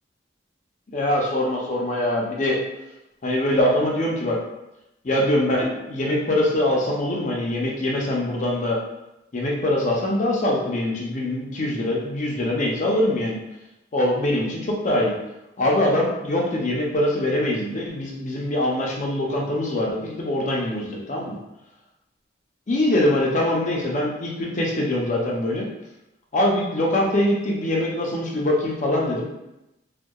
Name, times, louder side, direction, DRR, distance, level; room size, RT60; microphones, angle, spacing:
voice 1, 0.9-2.6 3.2-4.4 5.0-8.8 9.3-13.4 13.9-15.1 15.6-21.4 22.7-25.7 26.3-29.2, left 1 dB, 40° left, -2 dB, 0.5 m, -23 dB
2.6 x 2.2 x 2.2 m, 0.91 s
head